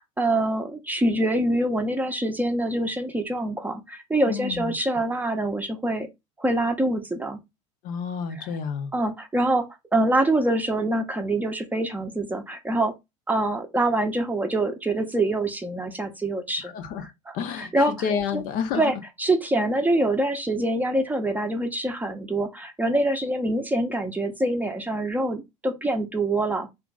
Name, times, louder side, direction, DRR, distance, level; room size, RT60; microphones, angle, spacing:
voice 1, 0.0-6.1 6.4-7.4 8.4-8.5 8.9-9.6 9.9-12.9 13.3-16.7 17.3-17.9 18.8-26.7, right 1 dB, 10° right, 0.7 m, -25 dB
voice 2, 4.3-4.7 7.8-8.9 16.6-17.1 17.3-18.8, left 6 dB, 55° left, 0.7 m, -30 dB
2.9 x 2.6 x 3.6 m
hypercardioid pair, 90°, 16 cm